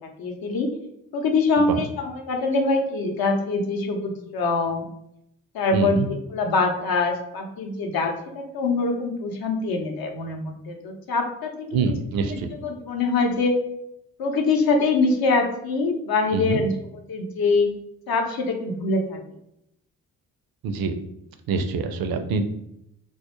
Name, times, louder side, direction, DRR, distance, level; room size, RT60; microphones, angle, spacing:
voice 1, 0.0-0.7 1.1-4.9 5.5-6.0 6.3-11.7 12.2-13.6 14.2-16.7 17.1-17.7 18.1-19.2, left 3 dB, 55° left, 3 dB, 0.7 m, -24 dB
voice 2, 5.7-6.1 11.7-12.5 16.3-16.6 20.6-20.9 21.5-22.4, right 4 dB, 55° right, 7 dB, 0.5 m, -25 dB
2.3 x 2.0 x 3.0 m, 0.79 s
hypercardioid pair, 45°, 43 cm